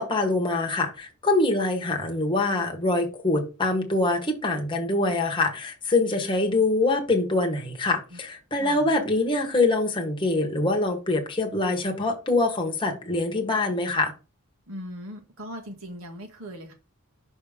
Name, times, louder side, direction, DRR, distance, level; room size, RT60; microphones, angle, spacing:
voice 1, 0.0-14.1, left 2 dB, 20° left, 1.2 m, -24 dB
voice 2, 8.6-8.9 14.7-16.7, equal, 75° right, 1.7 m, -39 dB
6.1 x 3.6 x 5.0 m
head